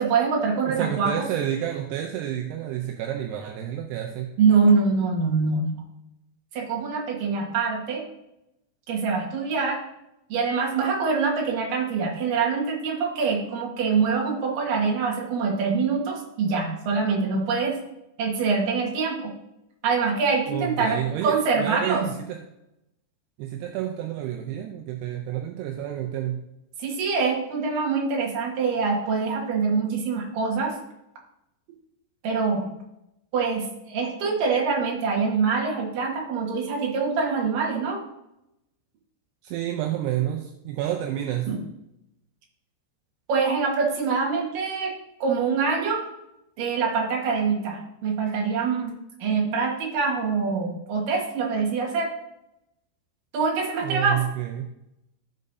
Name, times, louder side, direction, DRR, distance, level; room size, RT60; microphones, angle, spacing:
voice 1, 0.0-1.3 4.4-5.7 6.5-8.1 8.9-9.8 10.3-17.8 18.2-19.3 19.8-22.1 26.8-30.8 32.2-32.7 33.3-38.0 41.5-41.6 43.3-46.0 46.6-52.1 53.3-54.2, right 5 dB, 60° right, -1 dB, 2.9 m, -24 dB
voice 2, 0.7-4.3 20.5-22.4 23.4-26.4 39.4-41.5 53.8-54.7, right 11 dB, 80° right, 3 dB, 2.5 m, -29 dB
15.5 x 5.4 x 2.7 m, 0.86 s
omnidirectional pair, 5.1 m